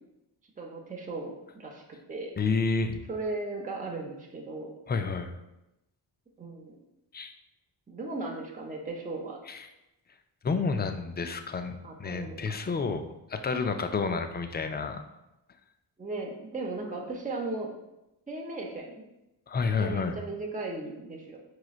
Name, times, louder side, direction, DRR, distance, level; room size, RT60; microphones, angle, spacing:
voice 1, 0.6-1.8 2.1-2.3 3.1-4.7 6.4-6.8 7.9-9.4 11.8-12.4 16.0-17.7 18.3-19.0 19.8-21.4, right 2 dB, 15° right, -1 dB, 0.8 m, -36 dB
voice 2, 2.4-3.0 4.9-5.3 7.1-7.3 9.5-9.7 10.4-13.0 13.3-15.0 19.5-20.2, left 4 dB, 20° left, 7 dB, 0.4 m, -30 dB
4.7 x 3.1 x 2.4 m, 0.93 s
supercardioid pair, 45°, 48 cm